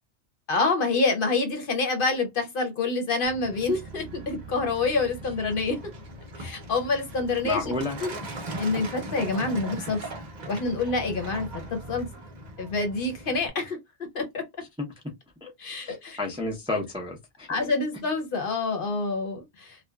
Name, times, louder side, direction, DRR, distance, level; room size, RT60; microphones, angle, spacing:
voice 1, 0.5-5.8 6.4-7.7 8.0-8.2 8.6-10.0 10.5-12.1 12.6-13.8 14.1-14.5 15.6-16.2 17.5-19.8, left 3 dB, 60° left, 0.8 m, -27 dB
Truck, 3.2-13.5, right 2 dB, 45° right, 0.7 m, -39 dB
voice 2, 7.4-8.0 15.4-15.5 15.9-17.7, left 2 dB, 5° right, 0.5 m, -31 dB
2.8 x 2.2 x 2.2 m
omnidirectional pair, 1.1 m